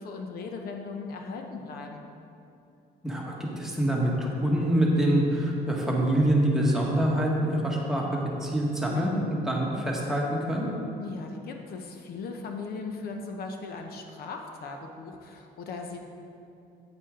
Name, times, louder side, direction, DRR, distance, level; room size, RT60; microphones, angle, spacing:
voice 1, 0.0-2.0 11.0-16.0, left 4 dB, 65° left, 3 dB, 0.8 m, -38 dB
voice 2, 3.0-10.7, right 1 dB, 5° right, -3 dB, 1.5 m, -25 dB
8.5 x 8.3 x 3.7 m, 2.6 s
cardioid pair, 110°, 17 cm